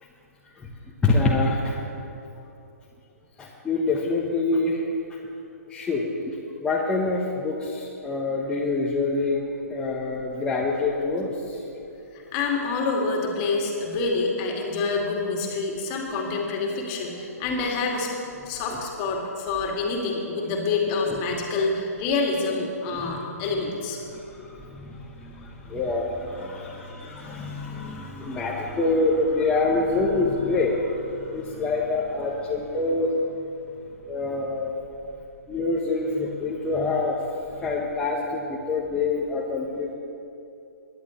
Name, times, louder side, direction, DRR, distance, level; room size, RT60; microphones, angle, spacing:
voice 1, 1.0-1.8 3.4-4.9 5.7-11.6 18.4-18.8 21.1-21.2 22.9-23.5 24.1-33.5 34.1-34.8 35.5-39.9, left 3 dB, 10° left, -5 dB, 1.1 m, -26 dB
voice 2, 12.3-18.1 18.5-24.0, left 3 dB, 35° left, -1 dB, 2.4 m, -27 dB
22.5 x 11.0 x 3.2 m, 2.7 s
figure-of-eight pair, 125°, 9 cm